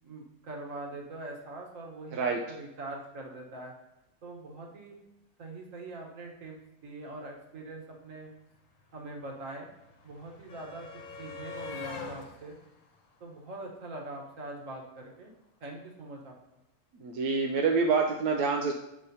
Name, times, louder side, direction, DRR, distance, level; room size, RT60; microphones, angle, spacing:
voice 1, 0.0-3.7 4.2-5.0 5.4-6.6 6.8-8.3 8.9-9.7 10.0-12.6 13.2-15.3 15.6-16.3, right 2 dB, 55° right, 0 dB, 1.5 m, -43 dB
sound 1, 7.7-7.8 7.9-14.1 15.3-15.4 15.7-15.9, left 4 dB, 60° left, 1.2 m, -46 dB
voice 2, 17.0-18.7, right 4 dB, 80° right, 1 dB, 1.1 m, -26 dB
8.8 x 5.0 x 2.7 m, 0.89 s
omnidirectional pair, 1.7 m